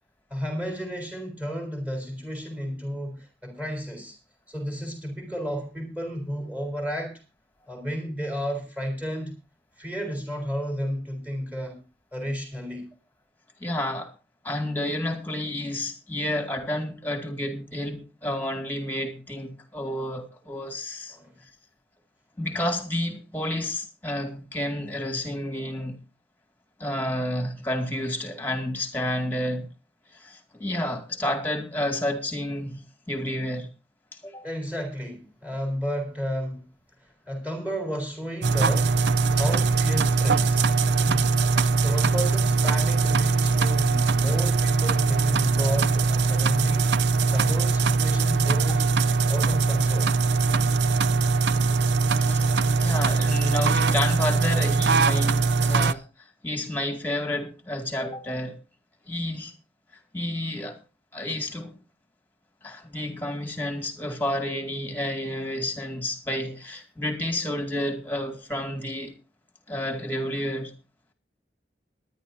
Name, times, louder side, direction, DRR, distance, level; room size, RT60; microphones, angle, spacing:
voice 1, 0.3-4.2 4.5-7.2 7.7-9.3 9.8-11.8 12.1-12.9 21.1-21.3 34.4-36.6 37.0-39.0 39.4-48.9 49.3-50.2, equal, 10° right, 3.9 m, -32 dB
voice 2, 13.6-14.1 14.4-21.2 22.4-26.0 26.8-29.7 30.1-33.7 34.2-34.5 52.1-52.5 52.8-56.0 56.4-58.6 59.1-59.5 60.1-60.8 61.1-61.8 62.6-69.2 69.7-70.7, left 1 dB, 10° left, 2.2 m, -30 dB
sound 1, 38.4-55.9, right 4 dB, 75° right, 0.5 m, -22 dB
22.0 x 10.5 x 2.7 m
head